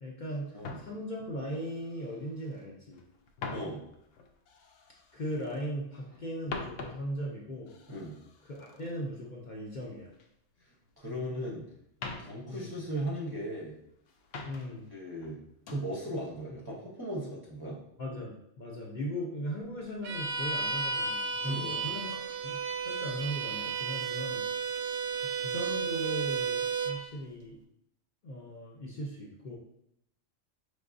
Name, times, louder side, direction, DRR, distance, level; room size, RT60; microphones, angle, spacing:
voice 1, 0.0-3.0 5.1-7.7 8.5-10.1 12.5-12.8 14.4-14.9 18.0-24.4 25.4-27.6 28.2-29.6, equal, 45° left, -3 dB, 0.7 m, -38 dB
sound 1, 0.6-2.6 2.9-5.8 6.1-10.3 10.6-11.5 11.8-13.7 14.0-14.9 15.2-15.9 16.4-16.7, left 3 dB, 75° left, 0.9 m, -45 dB
voice 2, 3.5-3.8 7.9-8.1 11.0-11.6 12.2-13.7 14.9-15.4 15.7-17.8 21.4-21.8, right 1 dB, 25° right, -6 dB, 0.6 m, -37 dB
Bowed string instrument, 20.0-27.0, right 5 dB, 60° right, 0.7 m, -33 dB
5.2 x 3.3 x 2.5 m, 0.76 s
omnidirectional pair, 1.3 m